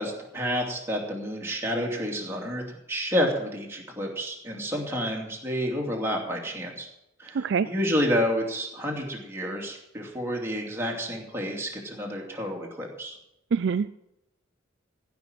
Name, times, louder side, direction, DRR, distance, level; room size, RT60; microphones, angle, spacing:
voice 1, 0.0-6.9 7.2-13.2, equal, 10° right, -1 dB, 2.7 m, -29 dB
voice 2, 7.3-7.7 13.5-14.0, right 6 dB, 60° right, 13 dB, 0.4 m, -25 dB
15.5 x 6.1 x 9.0 m, 0.83 s
head